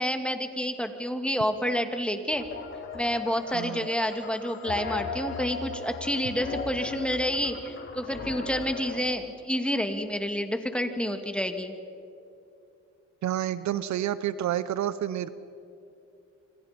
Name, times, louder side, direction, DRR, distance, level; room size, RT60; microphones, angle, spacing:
voice 1, 0.0-2.4 2.9-11.7, equal, 5° left, 6 dB, 2.4 m, -29 dB
sound 1, 2.3-9.1, left 4 dB, 40° left, 3.9 m, -37 dB
voice 2, 3.5-3.9 13.2-15.3, right 11 dB, 70° right, 15 dB, 1.0 m, -29 dB
27.5 x 25.5 x 5.3 m, 2.7 s
cardioid pair, 90°, 30 cm